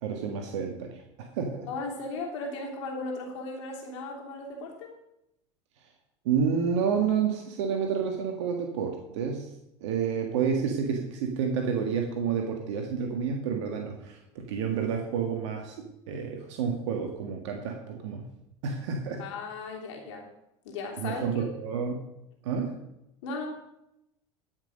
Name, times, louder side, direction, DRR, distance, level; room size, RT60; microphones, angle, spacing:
voice 1, 0.0-1.7 6.3-9.5 9.8-18.3 18.6-19.2 21.0-22.1 22.4-22.7, right 6 dB, 70° right, 2 dB, 1.7 m, -30 dB
voice 2, 1.7-4.9 19.2-20.3 20.6-21.4 23.2-23.5, left 3 dB, 70° left, 0 dB, 3.1 m, -36 dB
13.0 x 6.0 x 6.5 m, 0.84 s
hypercardioid pair, 85°, 16 cm